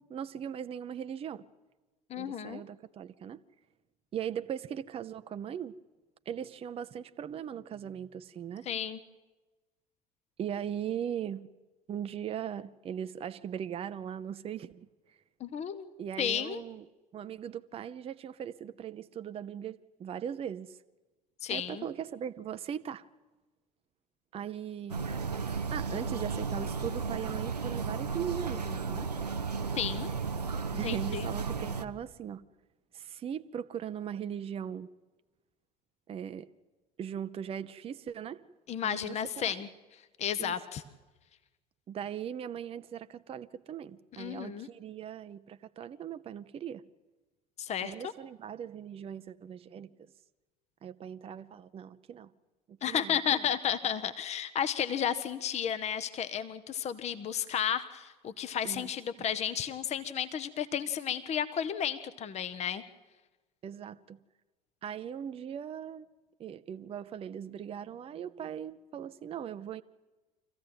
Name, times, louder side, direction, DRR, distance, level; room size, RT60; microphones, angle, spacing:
voice 1, 0.0-1.4 2.1-3.4 4.1-5.8 6.3-8.7 10.4-11.5 11.9-15.2 16.0-16.8 17.1-20.8 21.5-23.1 24.3-25.1 25.7-29.1 30.8-32.4 32.9-34.9 36.1-36.5 37.0-38.5 38.8-39.7 40.4-40.6 41.9-46.8 47.8-49.9 50.8-52.3 52.7-53.5 58.6-58.9 59.2-59.3 63.6-64.2 64.8-66.1 66.4-69.8, right 9 dB, 30° right, 0.7 m, -39 dB
voice 2, 2.1-2.6 8.7-9.0 15.4-16.6 21.4-21.9 29.7-30.1 30.8-31.3 38.7-39.7 40.2-40.8 44.2-44.7 47.6-47.9 52.8-62.8, left 9 dB, 35° left, 1.1 m, -33 dB
sound 1, 24.9-31.8, right 5 dB, 90° right, 0.8 m, -34 dB
25.0 x 15.0 x 9.0 m
figure-of-eight pair, 70°, 20 cm